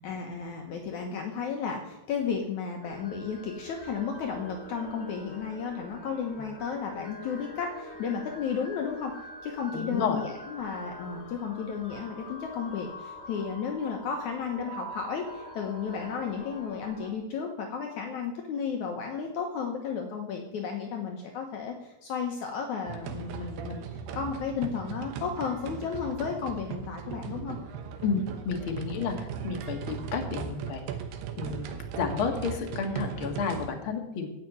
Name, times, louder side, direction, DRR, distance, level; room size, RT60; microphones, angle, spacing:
voice 1, 0.0-9.1 9.4-23.9 24.1-27.6, left 6 dB, 85° left, 3 dB, 1.7 m, -33 dB
sound 1, 2.8-17.1, equal, 25° left, 1.5 m, -45 dB
voice 2, 9.7-10.2 28.0-29.2 29.4-30.8 31.4-34.3, left 5 dB, 55° left, 3 dB, 1.4 m, -31 dB
sound 2, 22.9-33.7, right 7 dB, 70° right, 3.0 m, -38 dB
15.5 x 5.8 x 9.2 m, 0.94 s
omnidirectional pair, 5.2 m